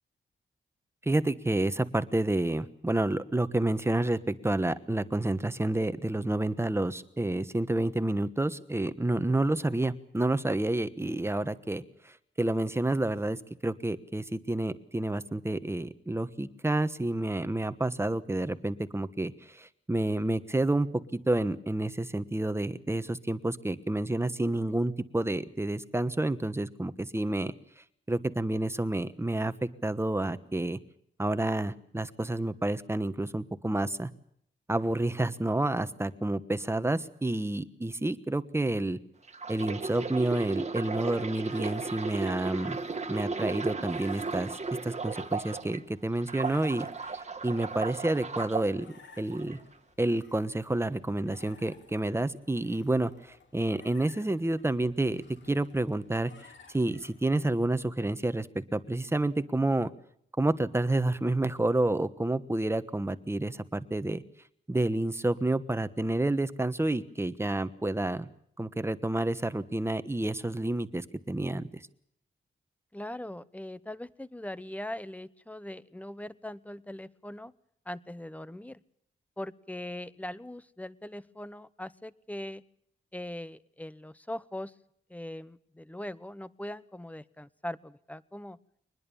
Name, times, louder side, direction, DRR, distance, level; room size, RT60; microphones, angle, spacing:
voice 1, 1.0-27.5 28.1-30.8 31.2-34.1 34.7-39.0 39.5-42.8 43.1-46.9 47.4-48.9 49.2-49.6 50.0-56.3 56.7-59.9 60.4-64.2 64.7-68.3 68.6-71.8, right 2 dB, 10° right, 12 dB, 1.2 m, -29 dB
sound 1, 39.3-45.8 46.2-48.7 49.3-49.5, right 4 dB, 35° right, 1.7 m, -35 dB
sound 2, 41.5-57.6, left 4 dB, 65° left, 4.3 m, -57 dB
voice 2, 72.9-77.5 77.9-78.8 79.4-82.6 83.1-84.7 85.1-88.6, left 1 dB, 5° left, 17 dB, 0.9 m, -40 dB
24.0 x 20.5 x 7.1 m, 0.69 s
wide cardioid pair, 145°, 20 cm